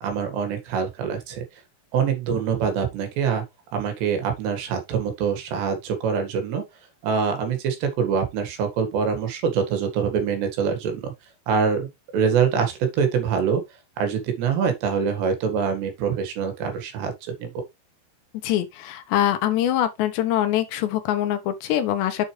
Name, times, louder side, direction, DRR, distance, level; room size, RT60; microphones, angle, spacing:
voice 1, 0.0-1.4 1.9-3.4 3.7-6.6 7.0-11.1 11.5-13.6 14.0-17.1 17.4-17.5, right 6 dB, 75° right, 4.0 m, -24 dB
voice 2, 18.4-22.3, left 12 dB, 80° left, 3.3 m, -23 dB
8.0 x 6.4 x 3.3 m
omnidirectional pair, 5.0 m